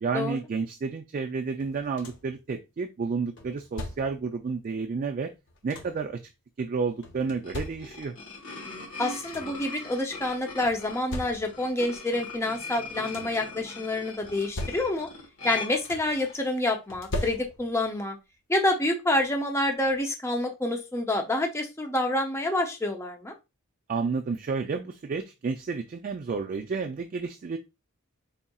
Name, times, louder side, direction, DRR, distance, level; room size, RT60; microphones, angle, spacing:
voice 1, 0.0-5.3 5.6-6.2 6.6-8.1 23.9-27.6, right 4 dB, 40° right, 4 dB, 0.3 m, -31 dB
sound 1, 1.6-2.4 3.4-4.3 5.3-6.1 7.0-8.2 8.8-8.9 9.1-9.7 10.6-11.8 12.7-13.5 14.2-15.3 15.5-16.3 16.9-17.9 19.2-19.3 19.8-20.0, left 1 dB, 55° left, 0.8 m, -39 dB
sound 2, 7.2-16.5, left 3 dB, 75° left, 1.3 m, -40 dB
voice 2, 9.0-15.1 15.4-18.2 18.5-23.3, left 1 dB, 10° left, 3 dB, 0.5 m, -28 dB
4.1 x 3.5 x 2.3 m, 0.25 s
head